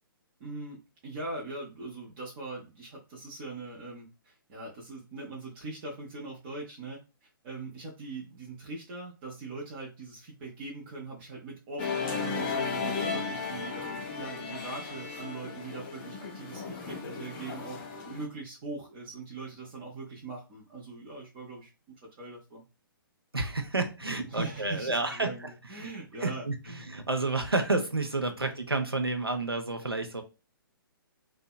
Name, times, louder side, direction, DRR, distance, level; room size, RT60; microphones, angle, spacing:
voice 1, 0.4-0.8 1.0-22.6 24.2-26.9 28.4-28.5, right 3 dB, 30° right, -4 dB, 0.5 m, -41 dB
Musical instrument, 11.8-18.3, left 5 dB, 25° left, 0.5 m, -35 dB
voice 2, 23.3-25.9 26.2-30.2, right 3 dB, 90° right, 5 dB, 0.5 m, -30 dB
2.7 x 2.1 x 2.2 m, 0.30 s
figure-of-eight pair, 125°, 12 cm